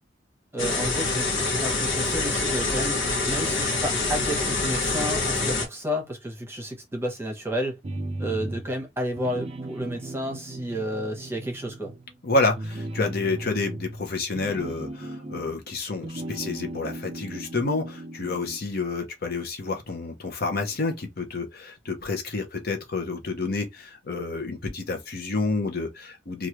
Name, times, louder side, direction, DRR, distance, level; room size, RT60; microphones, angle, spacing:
voice 1, 0.5-3.0 3.3-7.8 8.2-11.9, equal, 10° right, 0.9 m, -31 dB
sound 1, 0.6-5.7, left 3 dB, 70° left, 1.0 m, -26 dB
sound 2, 7.8-8.8 9.1-12.1 12.5-15.7 16.0-18.7, right 1 dB, 30° right, 0.4 m, -36 dB
voice 2, 12.2-26.5, left 3 dB, 50° left, 0.7 m, -29 dB
3.1 x 2.4 x 2.9 m
head